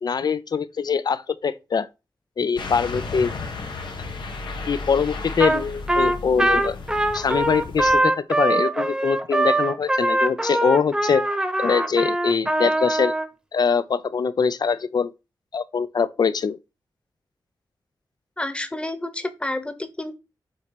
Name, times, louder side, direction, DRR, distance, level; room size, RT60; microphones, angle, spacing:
voice 1, 0.0-1.9 2.4-3.3 4.7-6.8 7.1-11.2 11.6-13.1 13.5-15.1 15.5-16.6, left 6 dB, 60° left, 0.5 m, -23 dB
sound 1, 2.6-7.9, left 3 dB, 80° left, 1.6 m, -34 dB
Trumpet, 5.4-5.6 5.9-13.3, right 1 dB, 10° right, 0.9 m, -22 dB
voice 2, 18.4-20.1, left 1 dB, 15° left, 1.0 m, -29 dB
7.5 x 3.1 x 5.9 m
wide cardioid pair, 105°, 8 cm